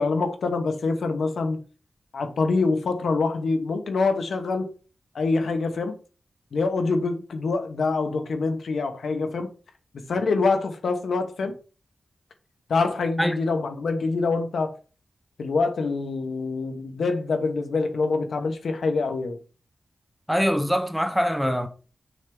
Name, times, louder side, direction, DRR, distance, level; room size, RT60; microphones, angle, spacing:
voice 1, 0.0-1.6 2.1-4.7 5.1-5.9 6.5-9.5 10.1-11.5 12.7-14.7 15.4-19.4, left 3 dB, 85° left, 1.1 m, -25 dB
voice 2, 20.3-21.7, equal, ahead, 0.6 m, -23 dB
6.4 x 3.5 x 5.3 m
wide cardioid pair, 155°, 0 cm